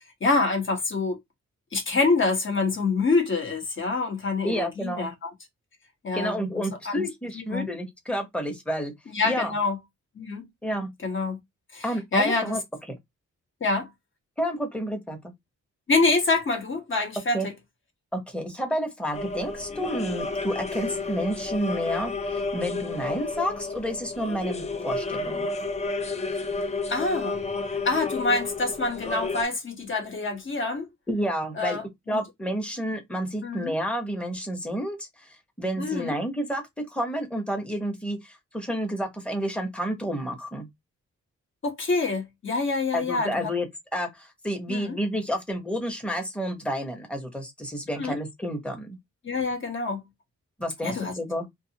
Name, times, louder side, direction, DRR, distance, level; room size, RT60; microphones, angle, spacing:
voice 1, 0.2-1.2 1.7-5.3 6.0-7.1 7.3-7.7 9.1-9.8 10.1-10.5 11.0-11.4 11.7-12.6 13.6-13.9 15.9-17.5 26.9-27.4 27.8-30.9 31.5-32.2 33.4-33.8 35.8-36.2 41.6-43.5 44.7-45.0 48.0-48.2 49.2-50.0 50.8-51.1, left 3 dB, 40° left, 1.1 m, -26 dB
voice 2, 4.4-5.1 6.1-8.9 9.2-9.5 10.6-10.9 11.8-12.6 12.9-13.0 14.4-15.3 17.3-17.5 18.1-25.5 31.1-31.8 32.1-35.1 35.6-40.7 42.9-43.7 43.9-49.0 50.6-51.5, equal, 5° left, 0.9 m, -30 dB
sound 1, 19.1-29.4, left 3 dB, 25° left, 0.4 m, -31 dB
2.4 x 2.4 x 2.8 m
cardioid pair, 100°, 29 cm